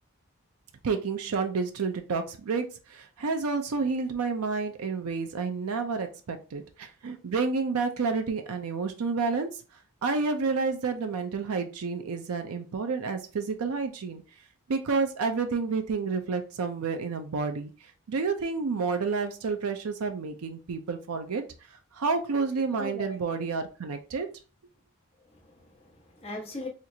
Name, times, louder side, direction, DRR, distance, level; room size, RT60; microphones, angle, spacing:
voice 1, 0.8-9.6 10.0-14.2 14.7-21.4 21.7-24.3, right 4 dB, 85° right, 0.5 m, -30 dB
voice 2, 22.6-23.2 25.2-26.7, left 2 dB, 25° left, 1.3 m, -40 dB
4.3 x 2.4 x 2.7 m
head